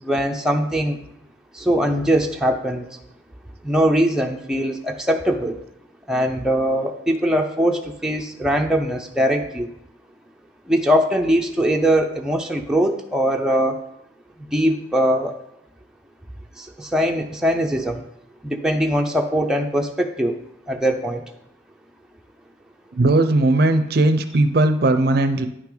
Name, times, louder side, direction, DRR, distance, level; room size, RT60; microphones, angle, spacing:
voice 1, 0.0-1.0 1.5-2.9 3.6-5.6 6.1-9.7 10.7-13.8 14.5-15.4 16.6-18.0 18.4-20.4 20.7-21.2, equal, 5° right, 2 dB, 0.5 m, -21 dB
voice 2, 22.9-25.5, right 2 dB, 50° right, 9 dB, 0.5 m, -18 dB
9.6 x 5.8 x 3.9 m, 0.79 s
head